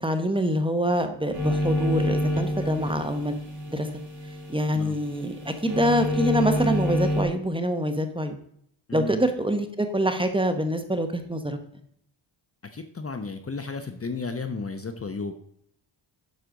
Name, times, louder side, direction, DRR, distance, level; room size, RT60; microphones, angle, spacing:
voice 1, 0.0-3.4 3.7-3.9 4.5-8.4 8.9-11.6, equal, 10° right, 7 dB, 1.0 m, -25 dB
sound 1, 1.3-7.2, left 1 dB, 45° right, 3.3 m, -28 dB
voice 2, 12.7-15.3, left 4 dB, 30° left, 8 dB, 0.8 m, -33 dB
9.5 x 6.7 x 3.8 m, 0.68 s
cardioid pair, 95°, 49 cm